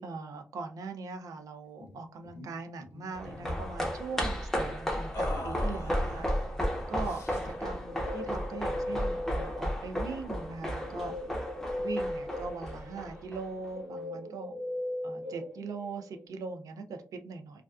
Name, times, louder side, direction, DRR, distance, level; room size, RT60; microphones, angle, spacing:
voice 1, 0.0-6.3 6.9-11.1 11.8-14.5 15.0-17.6, right 4 dB, 80° right, 6 dB, 0.4 m, -40 dB
sound 1, 1.8-2.5 2.8-3.6 5.1-6.4 7.0-7.6, left 1 dB, 55° left, 0.6 m, -41 dB
sound 2, 3.1-13.7 14.0-14.1, equal, 5° left, 0.5 m, -34 dB
Guitar, 7.5-10.0 10.8-16.2, left 1 dB, 20° right, 0.8 m, -38 dB
2.4 x 2.2 x 2.3 m, 0.36 s
wide cardioid pair, 170°, 6 cm